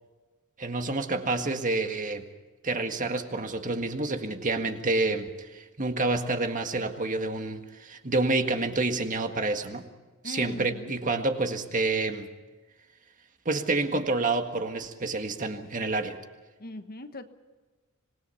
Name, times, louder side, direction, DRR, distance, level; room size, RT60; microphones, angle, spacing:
voice 1, 0.6-2.3 2.6-9.8 10.2-12.3 13.4-16.1, right 3 dB, 40° right, 6 dB, 1.8 m, -28 dB
voice 2, 10.2-10.9 16.6-17.3, left 1 dB, 45° left, 8 dB, 1.3 m, -40 dB
26.0 x 20.5 x 5.8 m, 1.3 s
head